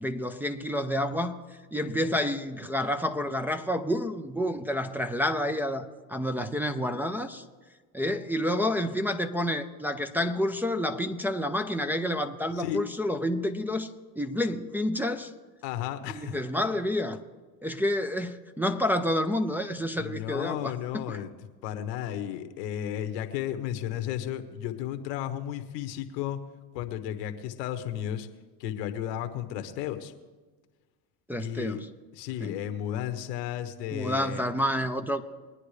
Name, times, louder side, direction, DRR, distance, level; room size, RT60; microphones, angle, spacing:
voice 1, 0.0-7.4 7.9-13.9 14.2-15.3 16.1-17.2 17.6-21.2 31.3-31.9 32.4-32.5 33.9-35.2, left 1 dB, 5° right, 4 dB, 0.7 m, -29 dB
voice 2, 15.6-16.4 20.0-21.3 21.6-26.4 26.7-28.3 28.6-30.1 31.4-31.8 32.1-34.4, left 11 dB, 80° left, 7 dB, 1.3 m, -33 dB
22.0 x 9.6 x 3.3 m, 1.4 s
supercardioid pair, 85°, 48 cm